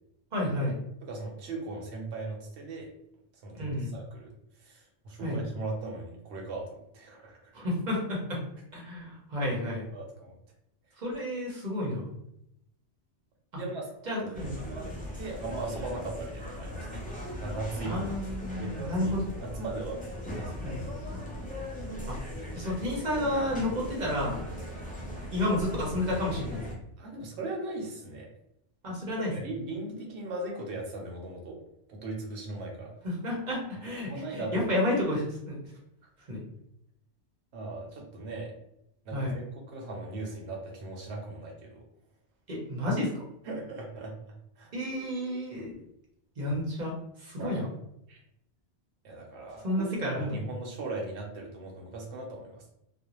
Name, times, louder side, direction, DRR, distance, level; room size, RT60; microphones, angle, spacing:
voice 1, 0.3-0.8 3.5-3.9 5.2-5.4 7.5-8.4 8.7-9.9 11.0-12.1 13.5-13.6 14.1-14.6 17.8-19.2 20.6-20.8 22.1-22.2 22.5-24.4 25.3-26.7 28.8-29.3 33.0-35.6 36.3-36.4 39.1-39.4 42.5-43.1 44.7-45.7 46.4-47.7 49.6-50.4, left 1 dB, 45° right, -3 dB, 0.8 m, -31 dB
voice 2, 1.0-2.9 3.4-4.3 4.6-7.5 9.9-10.3 13.5-13.9 14.6-14.9 15.2-17.1 17.4-18.1 18.6-19.1 19.4-21.3 27.0-28.3 29.2-31.6 31.9-32.9 33.9-34.7 37.5-38.5 39.0-41.8 43.4-44.7 47.4-47.6 48.1-48.2 49.0-52.7, right 2 dB, 75° right, 0 dB, 0.9 m, -38 dB
sound 1, 14.3-26.7, left 1 dB, 10° left, 0.4 m, -39 dB
2.4 x 2.1 x 2.9 m, 0.78 s
omnidirectional pair, 1.1 m